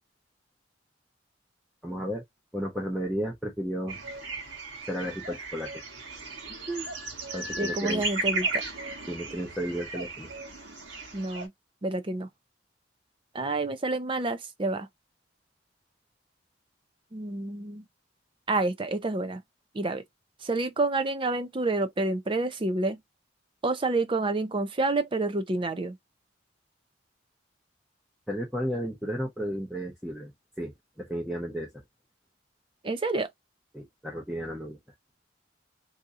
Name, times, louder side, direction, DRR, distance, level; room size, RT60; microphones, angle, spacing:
voice 1, 1.8-2.2 2.5-4.0 4.9-5.7 7.3-8.1 9.1-10.3 28.3-30.3 30.6-31.8 33.7-34.8, equal, ahead, 0.8 m, -33 dB
sound 1, 3.9-11.5, right 3 dB, 75° right, 1.4 m, -35 dB
voice 2, 7.5-8.6 11.1-11.5 11.8-12.3 13.3-14.9 17.1-17.8 18.5-19.4 19.7-20.0 20.4-23.0 23.6-26.0 32.8-33.3, right 2 dB, 25° right, 0.5 m, -28 dB
2.7 x 2.6 x 3.6 m
head